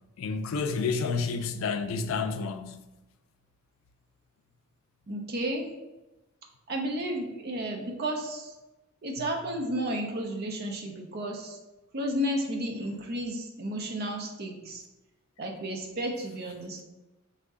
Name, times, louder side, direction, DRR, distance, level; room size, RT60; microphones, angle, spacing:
voice 1, 0.2-2.8, left 4 dB, 75° left, 0.3 m, -30 dB
voice 2, 5.1-5.6 6.7-8.5 9.0-11.6 11.9-14.8 15.4-16.8, equal, 50° right, 0.6 m, -32 dB
3.6 x 2.1 x 3.6 m
head